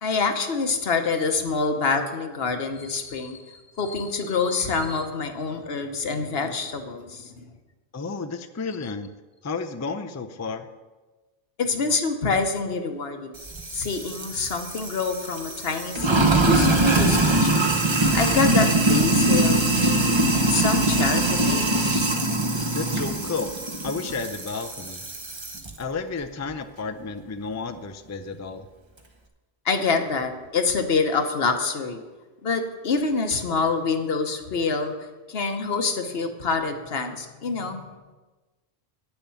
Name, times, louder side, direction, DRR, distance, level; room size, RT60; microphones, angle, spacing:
voice 1, 0.0-7.5 11.6-13.3 13.7-17.7 18.1-22.1 29.6-32.0 32.4-34.9 35.3-37.8, left 4 dB, 75° left, 6 dB, 1.2 m, -26 dB
voice 2, 7.9-9.1 9.4-10.7 22.7-23.5 23.8-25.1 25.8-28.7, left 4 dB, 25° left, 7 dB, 0.4 m, -32 dB
Sink (filling or washing), 13.4-25.7, right 2 dB, 30° right, 0.9 m, -22 dB
9.8 x 7.0 x 7.0 m, 1.2 s
omnidirectional pair, 1.1 m